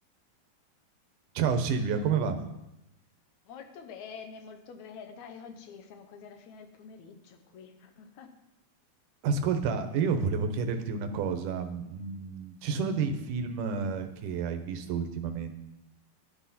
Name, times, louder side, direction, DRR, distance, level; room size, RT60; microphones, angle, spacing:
voice 1, 1.4-2.4 9.2-15.5, right 5 dB, 70° right, 6 dB, 2.2 m, -30 dB
voice 2, 3.5-8.3, left 6 dB, 65° left, 7 dB, 1.9 m, -47 dB
11.5 x 11.0 x 4.3 m, 0.91 s
omnidirectional pair, 4.4 m